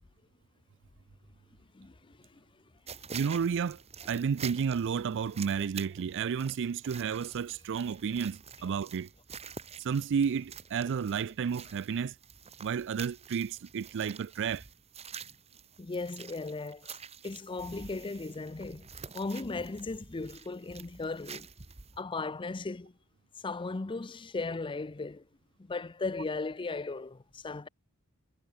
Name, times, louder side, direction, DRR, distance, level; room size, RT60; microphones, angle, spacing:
voice 1, 1.7-2.4 15.8-17.0 17.2-18.9 19.1-21.5 22.0-22.9 23.4-25.2 25.6-27.7, left 3 dB, 25° left, 0.5 m, -37 dB
sound 1, 2.9-22.0, right 6 dB, 30° right, 1.3 m, -48 dB
voice 2, 3.1-3.8 4.1-9.1 9.8-12.1 12.6-14.6, right 6 dB, 55° right, 0.4 m, -31 dB
head